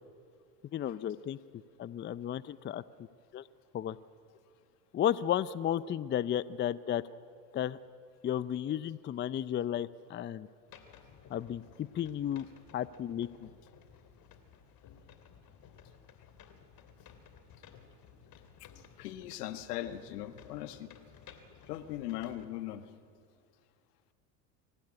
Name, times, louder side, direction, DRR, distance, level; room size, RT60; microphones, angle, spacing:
voice 1, 0.7-1.4 1.8-2.8 3.3-3.4 3.7-4.0 4.9-7.0 7.5-7.8 8.2-10.5 11.3-12.5 12.7-13.5, left 10 dB, 25° left, 17 dB, 0.5 m, -33 dB
sound 1, 10.7-22.5, left 7 dB, 50° left, 3.0 m, -56 dB
voice 2, 18.8-20.9 21.7-22.8, left 13 dB, 80° left, 10 dB, 1.5 m, -40 dB
24.0 x 16.0 x 9.8 m, 2.4 s
hypercardioid pair, 90°, 46 cm